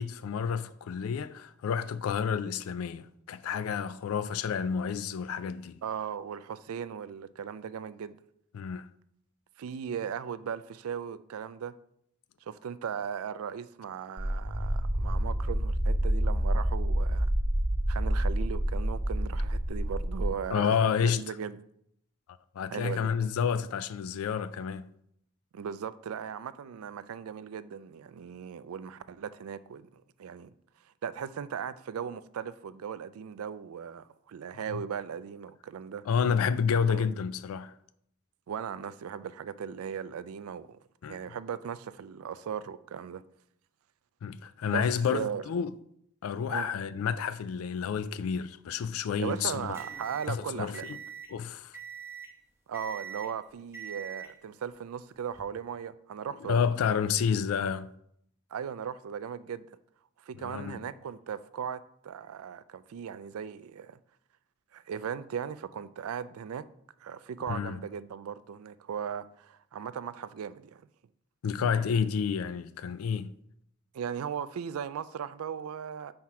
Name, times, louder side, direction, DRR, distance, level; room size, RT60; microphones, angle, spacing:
voice 1, 0.0-5.8 8.5-8.9 20.5-21.2 22.6-24.9 36.1-37.7 41.0-41.2 44.2-45.7 46.2-49.6 50.3-51.0 51.3-51.7 56.4-57.9 60.4-60.8 67.5-67.8 71.4-73.3, left 7 dB, 85° left, 0.3 m, -30 dB
voice 2, 5.8-8.2 9.6-11.7 12.5-17.3 17.9-21.6 22.7-23.1 25.5-30.5 31.0-36.1 36.7-37.1 38.5-40.8 41.1-43.2 44.7-45.4 46.5-46.7 49.2-51.0 52.7-56.6 58.5-59.7 60.2-64.0 64.7-66.7 67.0-70.8 73.9-76.1, right 7 dB, 85° right, 0.4 m, -38 dB
sound 1, 14.2-20.3, right 1 dB, 40° right, 0.9 m, -28 dB
sound 2, 49.3-51.4 51.7-52.4 52.7-53.4 53.7-54.4 55.2-55.4, right 7 dB, 10° right, 0.7 m, -43 dB
5.8 x 4.3 x 4.7 m
head